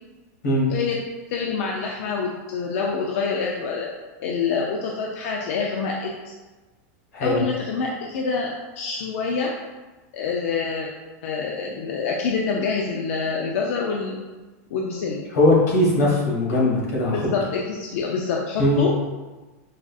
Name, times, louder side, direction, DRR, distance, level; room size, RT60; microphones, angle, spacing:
voice 1, 1.3-3.9 4.2-6.1 7.2-8.5 8.8-9.5 10.1-10.9 11.2-14.2 14.7-15.2 17.1-19.0, left 5 dB, 55° left, -1 dB, 0.4 m, -26 dB
voice 2, 15.3-17.2 18.6-18.8, left 1 dB, 85° left, -4 dB, 1.4 m, -19 dB
4.8 x 2.4 x 2.3 m, 1.2 s
supercardioid pair, 170°, 9 cm